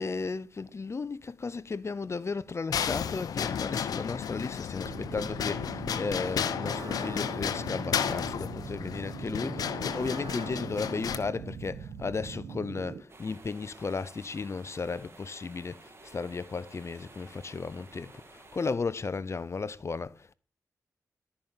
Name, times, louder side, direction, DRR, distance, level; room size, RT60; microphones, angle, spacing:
voice 1, 0.0-20.3, left 4 dB, 45° left, 0.6 m, -35 dB
sound 1, 2.7-11.2, left 8 dB, 85° left, 0.7 m, -33 dB
sound 2, 4.8-13.0, right 6 dB, 80° right, 1.3 m, -41 dB
sound 3, 13.1-18.7, right 3 dB, 40° right, 2.4 m, -53 dB
13.0 x 5.6 x 7.2 m
cardioid pair, 50°, 6 cm